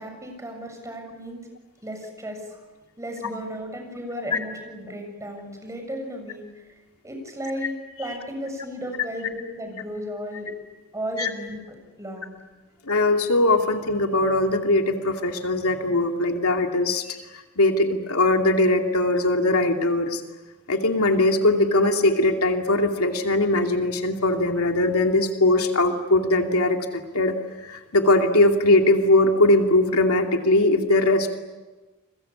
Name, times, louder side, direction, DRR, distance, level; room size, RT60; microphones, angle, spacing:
voice 1, 0.0-1.4 1.8-2.6 3.0-6.4 7.0-7.7 8.0-10.5 10.9-12.4, equal, 15° right, 4 dB, 7.2 m, -34 dB
voice 2, 12.8-20.2 20.7-31.3, left 2 dB, 80° left, 3 dB, 2.8 m, -21 dB
29.5 x 23.0 x 8.6 m, 1.2 s
head